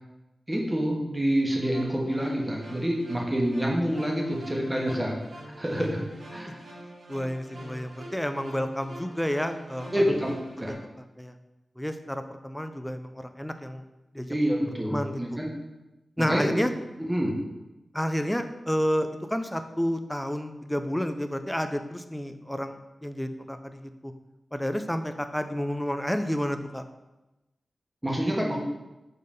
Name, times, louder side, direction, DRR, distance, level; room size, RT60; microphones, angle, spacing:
voice 1, 0.5-5.1 5.6-6.0 6.3-6.6 9.9-10.7 14.3-15.5 16.2-16.6 17.0-17.3 28.0-28.6, equal, 15° right, -1 dB, 1.3 m, -27 dB
sound 1, 1.5-10.7, right 1 dB, 80° right, 1.8 m, -45 dB
voice 2, 7.1-9.9 11.2-11.3 11.8-13.8 14.1-14.3 14.9-15.2 16.2-16.7 17.9-24.1 24.5-26.8, equal, 5° left, 8 dB, 0.4 m, -30 dB
5.3 x 4.0 x 5.2 m, 1.0 s
wide cardioid pair, 110°, 0 cm